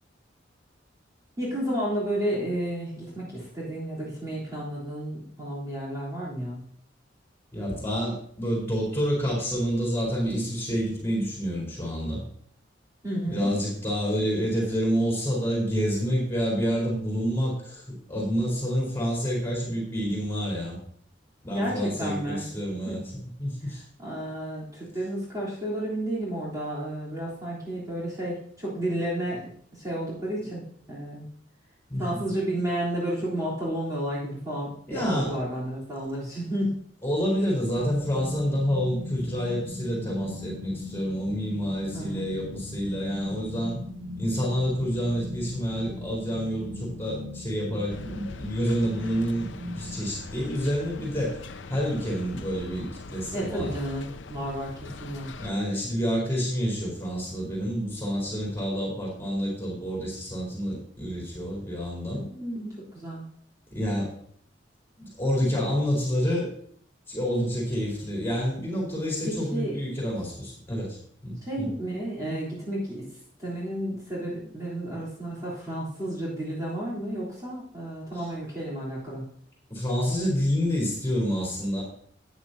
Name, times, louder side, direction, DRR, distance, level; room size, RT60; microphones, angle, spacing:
voice 1, 1.4-6.6 13.0-13.5 21.5-22.5 22.9-23.0 24.0-29.4 29.7-31.3 32.0-36.8 41.9-42.3 53.3-55.3 62.3-63.2 69.2-69.8 71.4-73.1 73.4-79.3, right 1 dB, 20° right, -8 dB, 3.6 m, -32 dB
voice 2, 7.5-12.2 13.3-20.8 21.4-23.0 23.4-23.8 31.9-32.2 34.9-35.4 37.0-43.8 44.2-51.4 51.7-53.7 55.4-62.2 63.7-64.1 65.0-66.5 67.1-71.0 71.2-71.7 78.1-78.3 79.7-81.8, equal, 15° left, -3 dB, 4.2 m, -28 dB
sound 1, 37.8-50.0, left 1 dB, 65° right, 2.2 m, -39 dB
sound 2, 47.9-55.5, left 3 dB, 90° left, 0.7 m, -42 dB
13.5 x 9.4 x 2.8 m, 0.62 s
head